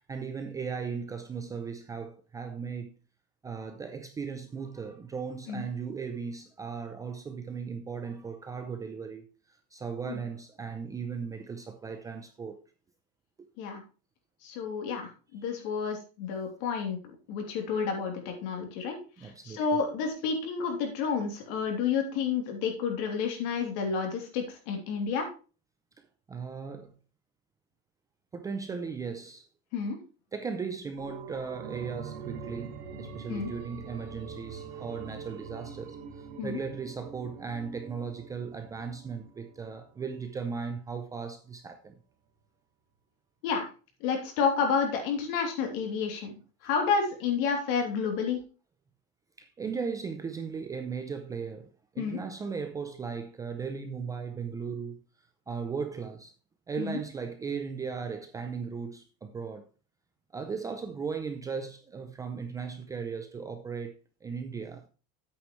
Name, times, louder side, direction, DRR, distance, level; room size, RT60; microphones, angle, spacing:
voice 1, 0.1-2.9 3.4-12.6 19.2-19.8 26.3-26.9 28.3-29.4 30.3-42.0 49.4-51.7 51.9-55.0 55.5-56.3 56.7-59.7 60.3-64.9, right 5 dB, 10° right, 0.5 m, -37 dB
voice 2, 14.4-17.0 17.3-25.3 29.7-30.0 33.3-33.5 36.4-36.6 43.4-43.7 44.0-46.3 46.6-48.4 52.0-52.2 56.8-57.0, left 6 dB, 60° left, 3.1 m, -30 dB
sound 1, 31.0-40.3 40.7-40.8, right 6 dB, 65° right, 1.9 m, -44 dB
9.5 x 8.5 x 3.1 m
cardioid pair, 180°, 30 cm